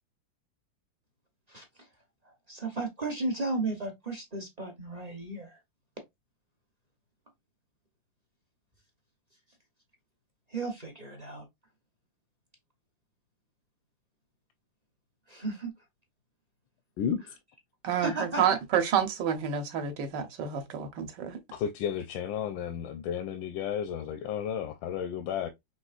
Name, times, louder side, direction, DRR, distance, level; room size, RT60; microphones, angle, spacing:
voice 1, 1.5-1.9 2.2-5.6 10.5-11.4 15.3-15.7 17.9-18.5, right 2 dB, 40° right, 0.6 m, -35 dB
voice 2, 17.8-21.4, right 8 dB, 70° right, 1.4 m, -29 dB
voice 3, 21.5-25.5, left 8 dB, 80° left, 1.3 m, -32 dB
5.3 x 3.1 x 2.4 m
omnidirectional pair, 2.1 m